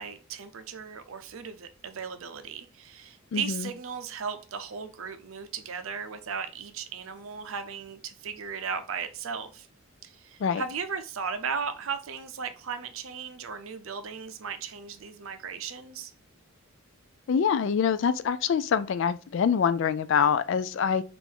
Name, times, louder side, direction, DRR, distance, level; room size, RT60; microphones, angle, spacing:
voice 1, 0.0-9.7 10.0-16.1, right 6 dB, 75° right, 0.6 m, -36 dB
voice 2, 3.3-3.7 10.4-10.6 17.3-21.0, left 7 dB, 60° left, 0.3 m, -25 dB
3.6 x 2.5 x 4.5 m
head